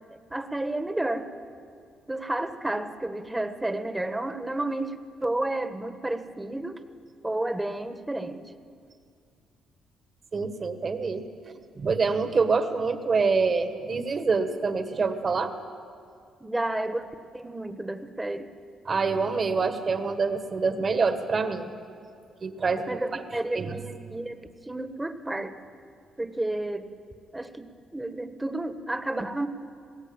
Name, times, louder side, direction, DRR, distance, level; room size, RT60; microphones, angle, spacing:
voice 1, 0.1-1.3 2.1-6.8 7.2-8.5 16.4-18.5 22.9-25.6 26.2-26.9 27.3-29.5, right 1 dB, 10° right, 9 dB, 1.4 m, -31 dB
voice 2, 10.3-11.2 11.8-15.5 18.9-21.7 22.4-23.2 23.5-23.8, right 4 dB, 40° right, 8 dB, 1.8 m, -26 dB
20.0 x 17.0 x 8.9 m, 2.3 s
cardioid pair, 90°, 0 cm